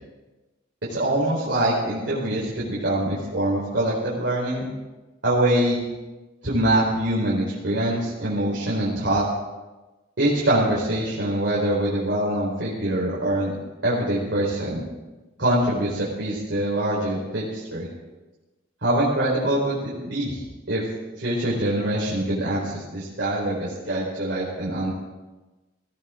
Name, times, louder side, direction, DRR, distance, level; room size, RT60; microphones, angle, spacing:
voice 1, 0.9-4.7 5.2-5.8 6.4-9.2 10.2-13.5 13.8-14.8 15.4-17.9 18.8-20.8 21.2-24.9, right 1 dB, 65° right, -7 dB, 4.3 m, -24 dB
21.0 x 16.0 x 3.8 m, 1.1 s
head